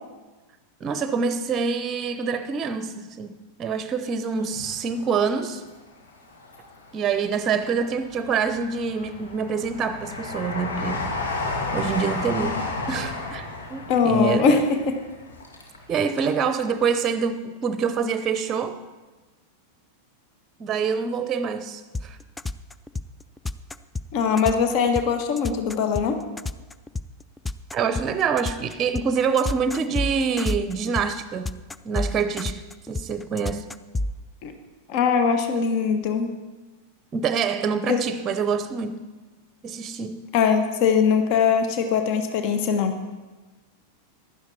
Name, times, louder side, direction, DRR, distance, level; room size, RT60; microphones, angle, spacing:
voice 1, 0.8-5.6 6.9-11.1 11.7-14.6 15.9-18.8 20.6-22.2 27.7-33.7 37.1-39.0 39.6-40.2, right 5 dB, 25° right, 0.8 m, -26 dB
Train, 4.4-5.6 6.1-7.0 7.6-16.3 16.6-16.7, left 3 dB, 70° left, 2.3 m, -32 dB
voice 2, 13.9-15.0 24.1-26.2 34.4-34.5 34.9-36.3 37.9-38.0 40.3-42.9, left 6 dB, 45° left, 1.4 m, -21 dB
sound 1, 21.9-34.1, left 2 dB, 10° left, 0.5 m, -29 dB
15.5 x 12.0 x 4.3 m
figure-of-eight pair, 90°, 0 cm